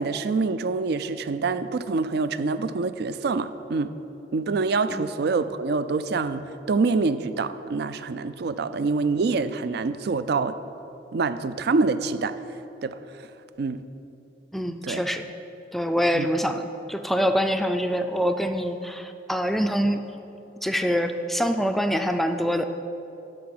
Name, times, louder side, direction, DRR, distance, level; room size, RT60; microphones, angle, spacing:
voice 1, 0.0-3.9 4.3-10.6 11.1-12.4 12.8-13.0 13.6-13.8 14.8-15.0 16.1-16.3, right 4 dB, 65° right, 13 dB, 0.4 m, -26 dB
voice 2, 14.5-15.3 15.7-20.0 20.6-22.6, equal, ahead, 7 dB, 0.4 m, -25 dB
13.0 x 4.8 x 8.6 m, 2.9 s
head